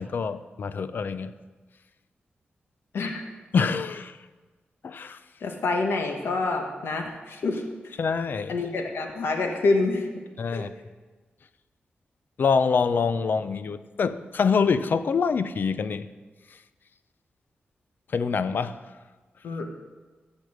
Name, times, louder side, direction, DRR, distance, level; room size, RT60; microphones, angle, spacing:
voice 1, 0.0-1.3 3.5-4.2 4.8-5.2 8.0-8.6 10.4-10.7 12.4-16.1 18.1-18.8, left 5 dB, 60° left, 13 dB, 0.5 m, -25 dB
voice 2, 5.4-8.0 8.5-10.1 10.5-10.6 19.4-19.7, left 3 dB, 85° left, 3 dB, 1.3 m, -27 dB
15.0 x 5.3 x 6.3 m, 1.3 s
wide cardioid pair, 140°, 4 cm